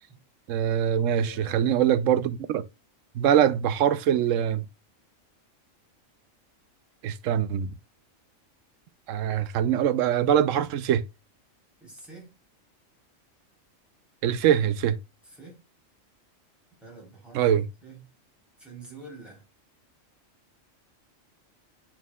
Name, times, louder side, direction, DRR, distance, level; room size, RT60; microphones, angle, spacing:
voice 1, 0.5-2.6 3.2-4.6 7.0-7.7 9.1-11.0 14.2-15.0 17.3-17.7, right 9 dB, 75° right, 1.0 m, -23 dB
voice 2, 1.2-1.8 11.8-12.4 15.2-15.6 16.8-17.5 17.8-18.0 18.6-19.4, right 3 dB, ahead, 3.5 m, -46 dB
9.3 x 4.5 x 2.3 m
omnidirectional pair, 1.4 m